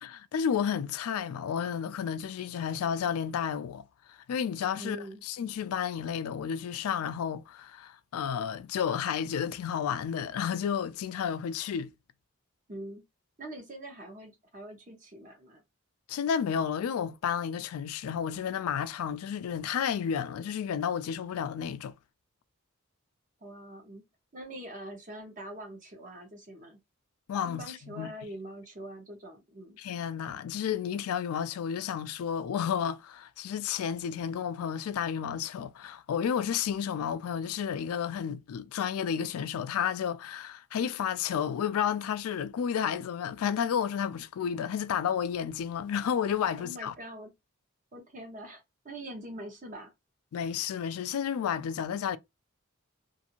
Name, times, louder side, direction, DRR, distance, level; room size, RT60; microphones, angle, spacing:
voice 1, 0.0-5.0 5.2-11.9 16.1-21.9 27.3-28.1 29.8-46.9 50.3-52.2, left 8 dB, 90° left, 0.3 m, -31 dB
voice 2, 4.8-5.2 12.7-13.0 13.4-15.6 23.4-24.0 24.3-26.8 27.4-29.8 46.6-47.3 47.9-48.6 48.8-49.9, right 1 dB, 35° right, 0.9 m, -43 dB
2.6 x 2.5 x 2.8 m
head